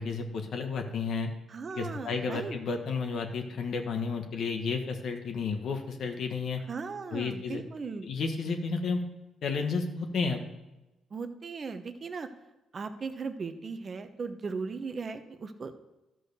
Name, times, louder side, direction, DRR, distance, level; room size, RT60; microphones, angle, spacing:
voice 1, 0.0-1.3 1.7-6.6 7.1-7.6 8.0-9.0 9.4-10.4, left 4 dB, 65° left, 4 dB, 1.3 m, -32 dB
voice 2, 1.5-2.6 6.7-8.1 11.1-12.3 12.7-15.7, right 4 dB, 40° right, 9 dB, 0.9 m, -37 dB
12.0 x 4.7 x 6.6 m, 1.0 s
cardioid pair, 90°, 0 cm